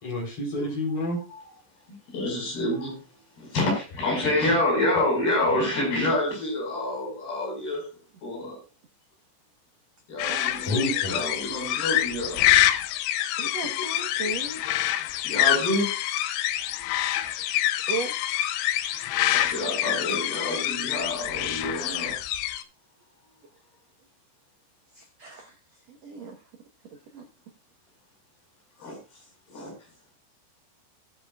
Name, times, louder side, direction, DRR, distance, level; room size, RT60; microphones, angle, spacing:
voice 1, 0.0-1.2 10.7-11.2 13.6-13.7 17.2-17.3, left 1 dB, 35° left, 4.4 m, -29 dB
voice 2, 2.1-3.1 3.4-7.9 8.2-8.6 10.1-12.5 15.2-16.0 18.9-22.2 28.8-29.0 29.5-29.9, left 1 dB, 60° left, 7.2 m, -28 dB
sound 1, 10.2-22.6, left 13 dB, 90° left, 3.1 m, -26 dB
voice 3, 10.3-11.0 13.4-14.7 17.4-17.5 17.9-18.3 24.9-26.4 27.1-27.3, right 4 dB, 75° right, 1.6 m, -36 dB
18.5 x 8.1 x 2.4 m
omnidirectional pair, 5.1 m